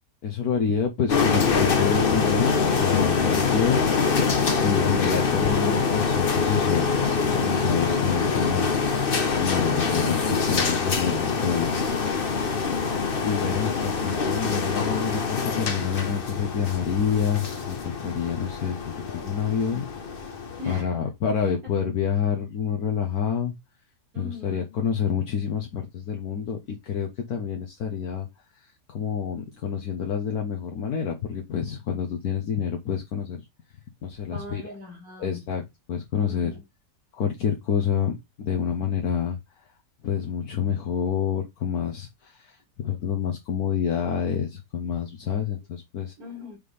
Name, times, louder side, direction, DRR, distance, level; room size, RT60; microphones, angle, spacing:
voice 1, 0.2-3.9 4.6-6.9 7.3-9.1 9.4-12.7 13.2-19.9 20.7-23.5 24.2-28.3 28.5-33.4 34.0-34.7 35.2-36.6 37.1-39.6 40.0-46.1, left 7 dB, 65° left, 1.5 m, -28 dB
sound 1, 1.1-20.8, left 5 dB, 40° left, 0.9 m, -25 dB
voice 2, 20.6-21.0 21.5-21.7 24.1-24.8 34.3-35.4 36.2-36.6 46.2-46.6, left 3 dB, 55° right, 3.6 m, -41 dB
6.9 x 3.8 x 4.9 m
omnidirectional pair, 1.8 m